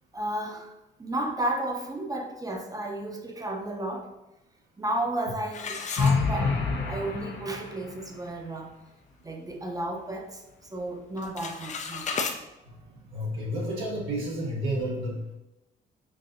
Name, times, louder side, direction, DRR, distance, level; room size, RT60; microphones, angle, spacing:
voice 1, 0.1-4.1 4.8-6.6 6.9-8.7 9.2-12.3, right 1 dB, 20° right, 3 dB, 0.6 m, -33 dB
sound 1, 5.5-6.8 7.2-7.3 7.9-8.0 8.4-8.7 9.1-10.2 10.5-10.8 11.1-12.4, left 5 dB, 35° left, 0.4 m, -35 dB
sound 2, 6.0-8.0, left 4 dB, 65° left, 0.8 m, -27 dB
voice 2, 12.6-15.3, equal, 80° right, -4 dB, 0.9 m, -31 dB
5.9 x 2.7 x 2.5 m, 0.95 s
cardioid pair, 90°, 20 cm